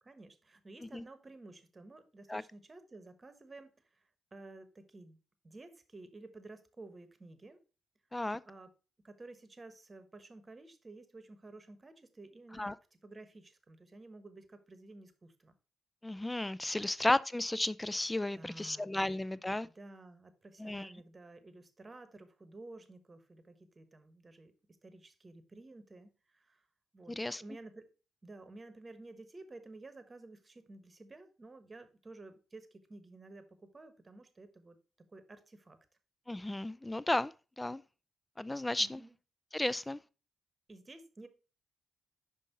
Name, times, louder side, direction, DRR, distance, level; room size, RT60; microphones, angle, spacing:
voice 1, 0.0-5.2 5.4-7.6 8.4-8.7 9.0-12.7 13.0-15.5 16.8-16.9 18.3-24.5 24.8-26.7 26.9-27.9 28.2-34.8 35.1-35.8 38.8-39.1 39.7-39.9 40.7-41.3, right 2 dB, 35° right, 1.1 m, -53 dB
voice 2, 16.0-19.7 20.6-20.9 27.2-27.4 36.3-37.8 38.4-39.0 39.5-40.0, left 1 dB, 15° left, 0.4 m, -33 dB
5.4 x 5.4 x 4.0 m
supercardioid pair, 50°, 0 cm